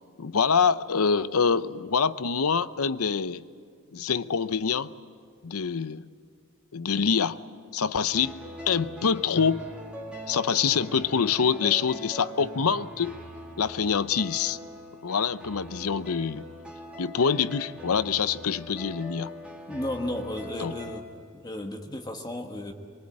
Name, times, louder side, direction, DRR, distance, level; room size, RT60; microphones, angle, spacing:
voice 1, 0.2-3.4 3.9-4.9 5.4-6.0 6.7-7.4 7.7-9.6 10.3-13.2 13.6-14.6 15.0-16.4 17.0-19.3 20.6-20.7, left 6 dB, 85° left, 15 dB, 0.7 m, -25 dB
sound 1, 8.1-21.0, equal, 5° right, 2.4 m, -42 dB
voice 2, 19.7-21.1 21.4-22.7, left 1 dB, 20° left, 3 dB, 1.3 m, -33 dB
24.0 x 23.0 x 8.8 m, 2.1 s
head